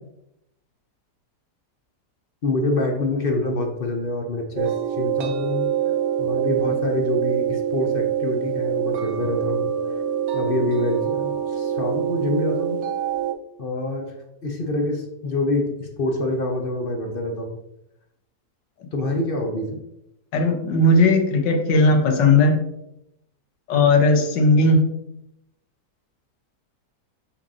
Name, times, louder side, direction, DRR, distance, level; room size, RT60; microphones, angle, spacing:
voice 1, 2.4-5.7 6.2-9.7 10.3-12.8 13.6-14.1 14.4-17.6 18.9-19.8, left 2 dB, 45° left, 3 dB, 0.8 m, -26 dB
sound 1, 4.6-13.3, right 9 dB, 65° right, 1.0 m, -25 dB
voice 2, 20.3-22.6 23.7-24.9, left 2 dB, 85° left, 4 dB, 1.6 m, -17 dB
6.4 x 5.8 x 2.7 m, 0.82 s
omnidirectional pair, 1.8 m